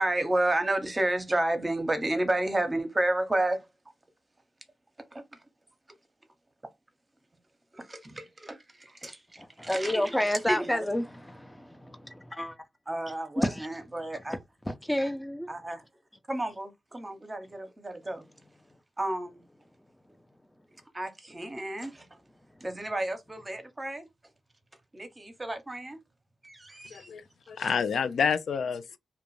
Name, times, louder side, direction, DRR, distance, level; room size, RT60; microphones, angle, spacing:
voice 1, 0.0-3.7 5.1-5.2 7.7-9.9 10.5-10.9 12.9-14.4 15.5-15.8 16.3-18.2 19.0-19.4 20.9-22.1 22.6-24.1 24.9-26.0 26.4-27.1 27.6-27.7, right 1 dB, 25° right, 0.8 m, -31 dB
voice 2, 9.4-12.6 13.4-13.7 14.7-15.5, left 1 dB, 10° left, 0.6 m, -30 dB
voice 3, 26.9-29.0, left 6 dB, 75° left, 0.3 m, -29 dB
2.5 x 2.2 x 3.0 m
cardioid pair, 50°, 0 cm